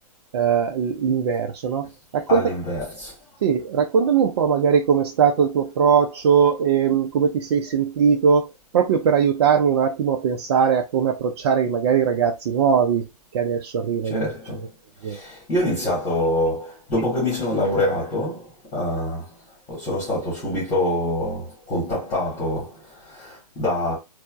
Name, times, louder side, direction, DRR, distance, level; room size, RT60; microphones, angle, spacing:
voice 1, 0.3-1.9 2.1-2.4 3.4-8.5 8.7-13.1 13.3-14.2 15.0-15.2, right 7 dB, 40° right, 0.4 m, -20 dB
voice 2, 2.3-3.2 14.0-14.7 15.0-19.3 19.7-24.0, left 1 dB, 20° left, 1.7 m, -25 dB
4.2 x 2.0 x 2.3 m
figure-of-eight pair, 120°, 20 cm